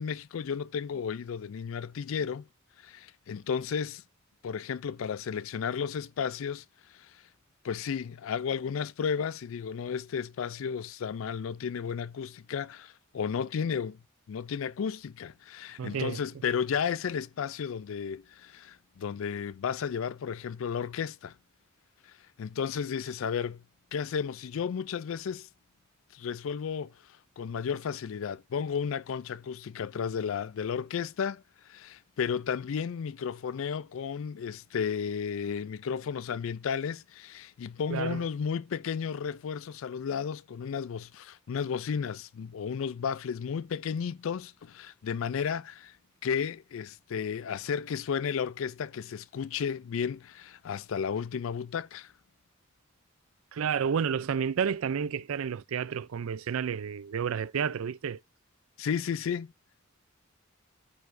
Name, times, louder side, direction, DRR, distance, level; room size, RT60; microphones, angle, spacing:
voice 1, 0.0-2.4 2.8-4.0 4.4-6.6 6.9-7.1 7.6-14.0 14.3-21.3 22.4-23.6 23.9-25.5 26.1-26.9 27.4-31.4 31.7-45.9 46.2-52.1 58.8-59.5, left 7 dB, 70° left, 0.4 m, -33 dB
voice 2, 15.8-16.2 37.9-38.2 53.5-58.2, right 7 dB, 85° right, 0.4 m, -30 dB
13.5 x 4.7 x 2.6 m
head